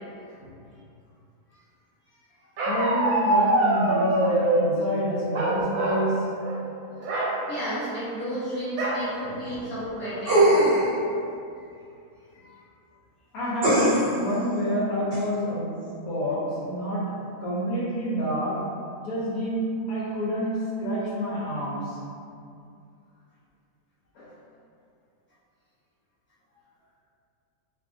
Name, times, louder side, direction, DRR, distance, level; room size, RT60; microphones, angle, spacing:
voice 1, 2.6-6.4 9.2-9.3 13.3-15.8 16.1-18.7 19.0-22.0 24.1-24.3, equal, 75° left, -7 dB, 1.2 m, -28 dB
Bark, 2.6-4.7 5.3-6.1 6.4-6.6 7.0-7.3 8.8-9.0 9.6-9.7 10.0-10.4, right 2 dB, 75° right, 1.0 m, -24 dB
voice 2, 7.5-10.5 11.5-11.7 12.4-12.6, equal, 10° left, -12 dB, 0.6 m, -33 dB
sound 1, 10.3-10.9 13.6-14.2 15.1-15.2, right 1 dB, 45° right, 0.9 m, -20 dB
2.6 x 2.6 x 2.5 m, 2.5 s
omnidirectional pair, 1.5 m